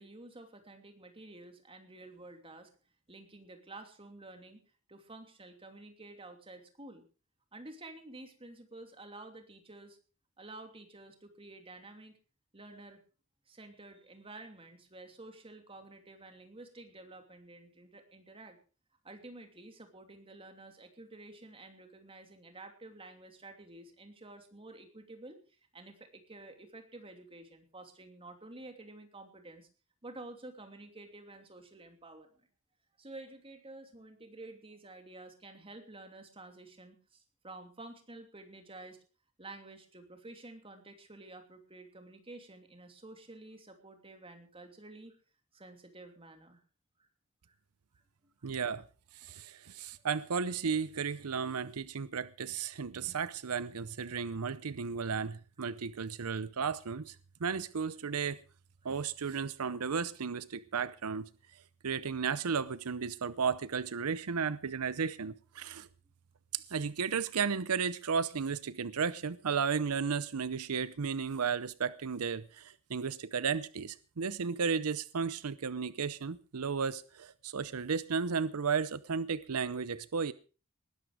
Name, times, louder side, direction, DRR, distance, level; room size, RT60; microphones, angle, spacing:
voice 1, 0.0-2.7 3.1-4.6 4.9-7.0 7.5-10.0 10.4-12.2 12.5-13.0 13.5-18.6 19.0-25.4 25.7-29.7 30.0-32.4 33.0-39.0 39.4-45.2 45.5-46.6 48.4-48.5 49.3-49.4 49.8-50.0, right 2 dB, 25° right, 2.9 m, -51 dB
voice 2, 48.4-48.8 49.1-58.4 58.8-61.3 61.8-65.9 66.5-80.3, right 6 dB, 90° right, 0.7 m, -34 dB
20.0 x 11.5 x 4.8 m
head